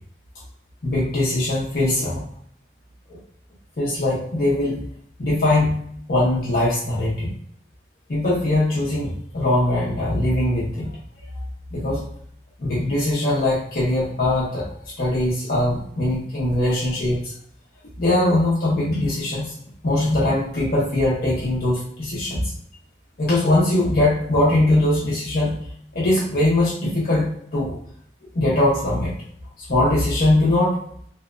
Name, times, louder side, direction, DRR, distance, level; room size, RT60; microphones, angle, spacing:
voice 1, 0.8-2.3 3.1-3.2 3.8-4.8 5.2-5.8 6.1-7.3 8.1-11.0 11.3-11.4 11.7-12.0 12.6-17.3 18.0-19.5 19.8-22.4 23.2-25.6 25.9-27.8 28.3-29.1 29.6-30.8, left 1 dB, 50° left, -6 dB, 0.6 m, -21 dB
2.7 x 2.1 x 2.4 m, 0.66 s
head